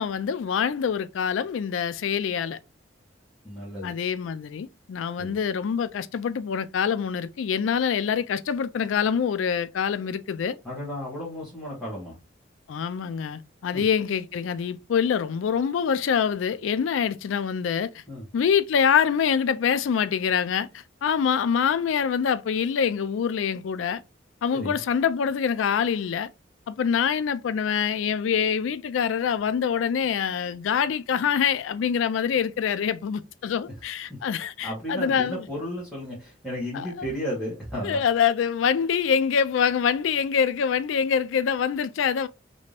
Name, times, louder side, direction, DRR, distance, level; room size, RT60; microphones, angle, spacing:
voice 1, 0.0-2.6 3.8-10.6 12.7-18.0 18.3-20.7 21.0-24.0 24.4-26.3 26.7-35.5 36.7-37.1 37.8-42.3, left 7 dB, 85° left, 0.3 m, -25 dB
voice 2, 3.4-4.0 5.2-5.4 10.6-12.1 13.7-13.8 18.1-18.2 24.5-24.8 34.6-38.0, equal, ahead, 1.4 m, -33 dB
3.3 x 2.7 x 3.3 m
head